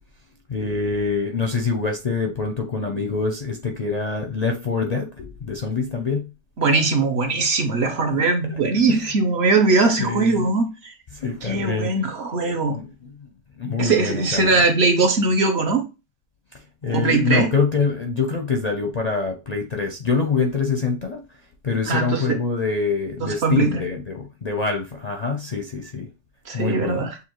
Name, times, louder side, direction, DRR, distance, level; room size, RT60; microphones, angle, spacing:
voice 1, 0.5-6.3 10.0-10.5 11.1-11.9 12.5-12.9 13.6-14.5 16.8-21.2 21.6-26.1 26.5-27.1, left 4 dB, 45° left, 0.6 m, -25 dB
voice 2, 6.6-10.9 11.4-12.8 13.8-15.9 16.9-17.5 21.9-22.4 23.2-23.8 26.5-27.2, right 3 dB, 55° right, 1.0 m, -20 dB
6.8 x 2.5 x 3.0 m
omnidirectional pair, 1.4 m